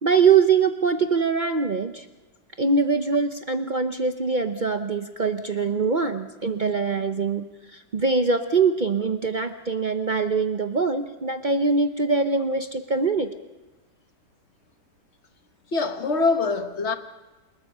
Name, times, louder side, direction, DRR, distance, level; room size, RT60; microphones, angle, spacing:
voice 1, 0.0-2.1 2.6-7.5 7.7-13.3, right 5 dB, 50° right, 0.5 m, -23 dB
voice 2, 15.7-17.0, left 3 dB, 45° left, 1.3 m, -23 dB
27.5 x 21.0 x 5.5 m
omnidirectional pair, 1.9 m